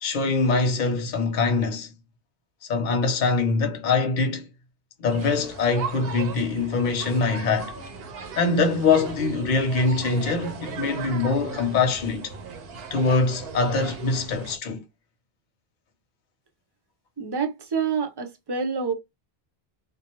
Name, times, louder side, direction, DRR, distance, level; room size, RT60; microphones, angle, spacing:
voice 1, 0.0-1.9 2.7-4.5 5.0-7.7 8.4-12.3 12.9-14.8, left 4 dB, 50° left, 0.8 m, -23 dB
sound 1, 5.1-14.6, right 5 dB, 70° right, 0.8 m, -37 dB
voice 2, 17.2-18.9, right 6 dB, 35° right, 0.4 m, -27 dB
2.4 x 2.1 x 2.9 m
omnidirectional pair, 1.1 m